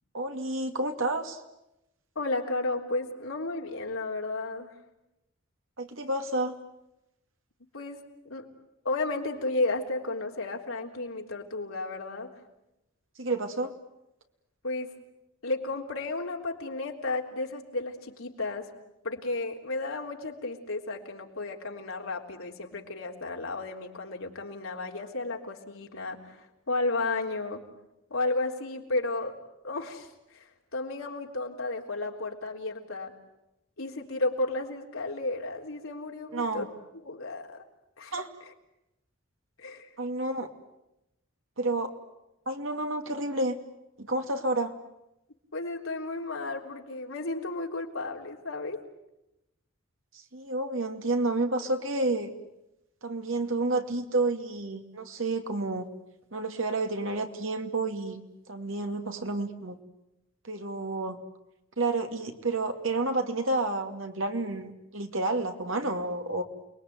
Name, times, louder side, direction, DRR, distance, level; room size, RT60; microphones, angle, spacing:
voice 1, 0.1-1.4 5.8-6.5 13.2-13.7 36.3-36.7 38.1-38.3 40.0-40.5 41.6-41.9 42.5-43.6 44.0-44.7 50.1-52.3 53.0-55.9 56.3-59.8 60.4-61.2 61.8-66.4, right 2 dB, 70° right, 6 dB, 2.5 m, -30 dB
voice 2, 2.2-4.7 7.7-8.5 8.8-12.3 14.6-14.9 15.4-18.7 19.0-27.6 28.1-29.4 29.6-33.1 33.8-36.7 37.0-37.6 38.0-38.1 39.6-40.0 45.5-48.8, left 2 dB, 75° left, 1 dB, 3.7 m, -33 dB
29.0 x 21.5 x 9.5 m, 0.92 s
head